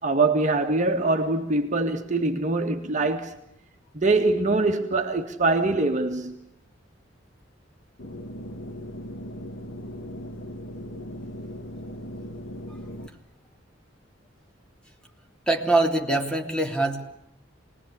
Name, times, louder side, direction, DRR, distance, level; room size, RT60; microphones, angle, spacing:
voice 1, 0.0-3.3 3.9-6.3, right 3 dB, 40° right, 1.9 m, -23 dB
sound 1, 8.0-13.1, equal, 70° left, 2.1 m, -38 dB
voice 2, 15.5-17.0, right 2 dB, 5° left, 3.3 m, -23 dB
27.5 x 20.5 x 8.3 m
head